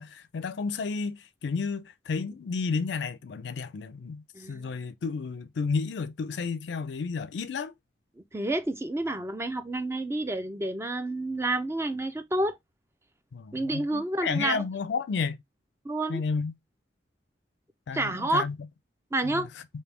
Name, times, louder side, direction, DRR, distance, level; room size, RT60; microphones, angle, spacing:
voice 1, 0.0-7.7 13.3-15.4 16.1-16.5 17.9-18.6 19.2-19.5, left 5 dB, 70° left, 0.4 m, -32 dB
voice 2, 4.3-4.7 8.3-12.6 13.5-14.6 15.8-16.2 17.9-18.4 19.1-19.5, right 2 dB, 15° right, 0.4 m, -29 dB
3.4 x 2.7 x 3.0 m
head